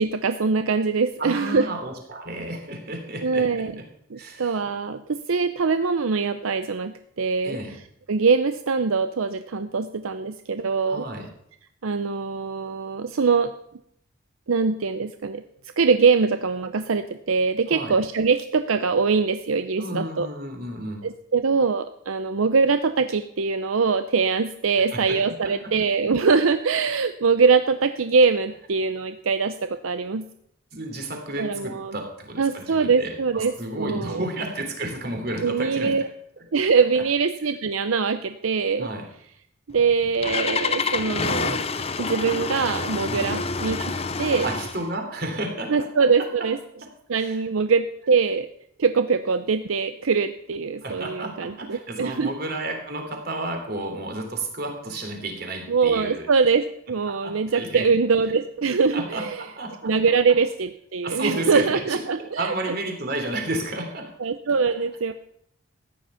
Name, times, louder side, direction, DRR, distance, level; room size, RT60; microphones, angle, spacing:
voice 1, 0.0-1.6 3.2-3.7 4.1-7.6 8.1-11.0 11.8-13.5 14.5-15.4 15.8-20.3 21.0-30.3 31.4-32.0 32.4-34.2 35.4-36.1 36.5-38.9 39.7-41.6 42.0-43.9 44.2-44.5 45.7-46.6 47.1-48.5 48.8-52.3 55.7-59.4 59.8-62.7 64.2-65.1, right 5 dB, 80° right, 10 dB, 0.6 m, -23 dB
voice 2, 1.2-3.6 4.2-4.6 7.4-7.8 10.9-11.3 17.7-17.9 19.8-21.1 24.9-25.2 25.4-25.7 30.7-35.9 38.8-39.1 43.1-43.4 44.4-45.9 47.2-47.4 50.8-56.3 57.1-57.8 58.9-59.9 61.0-62.0 62.4-64.1, right 1 dB, 45° right, 3 dB, 3.3 m, -32 dB
Engine starting, 39.7-44.9, left 4 dB, 30° left, 0.6 m, -28 dB
14.5 x 10.0 x 5.7 m, 0.72 s
head